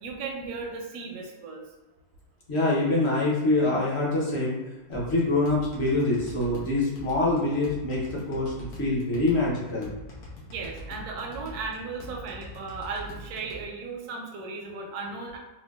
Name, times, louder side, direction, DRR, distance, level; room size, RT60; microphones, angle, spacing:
voice 1, 0.0-1.6 10.5-15.4, right 4 dB, 80° right, 2 dB, 1.1 m, -36 dB
voice 2, 2.5-4.6 4.9-9.9, left 2 dB, 50° left, -5 dB, 1.0 m, -25 dB
sound 1, 4.9-13.6, left 1 dB, 80° left, 1.3 m, -43 dB
4.4 x 2.2 x 2.3 m, 1.1 s
omnidirectional pair, 1.7 m